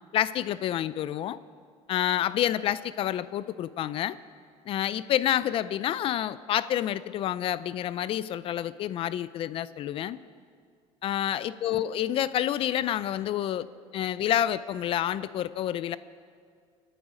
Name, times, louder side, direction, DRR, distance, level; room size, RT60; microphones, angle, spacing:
voice 1, 0.1-1.4 1.9-4.2 4.7-10.2 11.0-13.7 13.9-16.0, left 11 dB, 45° left, 17 dB, 0.4 m, -28 dB
25.0 x 9.2 x 5.0 m, 2.1 s
cardioid pair, 130°, 13 cm